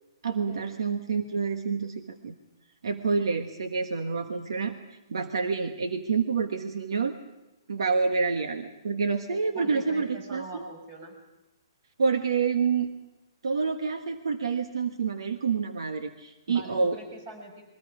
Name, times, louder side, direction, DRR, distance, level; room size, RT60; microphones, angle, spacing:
voice 1, 0.2-2.3 2.8-4.8 5.1-7.1 7.7-10.6 12.0-12.9 13.4-17.0, right 5 dB, 80° right, 7 dB, 1.4 m, -28 dB
voice 2, 9.5-11.1 16.5-17.6, right 2 dB, 35° right, 3 dB, 6.3 m, -42 dB
29.0 x 22.0 x 5.1 m, 0.98 s
hypercardioid pair, 155°, 3 cm